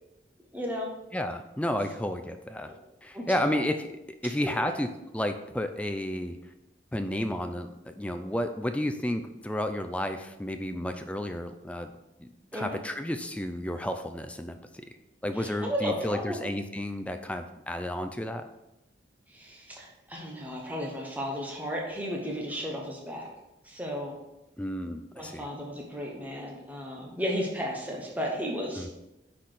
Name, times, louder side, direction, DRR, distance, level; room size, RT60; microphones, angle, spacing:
voice 1, 0.5-0.9 1.7-1.8 2.7-2.8 3.1-3.6 12.5-12.8 15.3-16.4 19.3-23.3 23.6-24.2 25.1-28.9, equal, 10° right, -2 dB, 0.9 m, -34 dB
voice 2, 1.1-2.7 3.0-3.9 4.2-4.9 5.1-6.4 6.9-11.9 12.2-14.6 15.2-18.4 24.6-25.5 28.8-28.9, left 1 dB, 5° left, 7 dB, 0.4 m, -32 dB
5.9 x 4.2 x 4.9 m, 0.92 s
head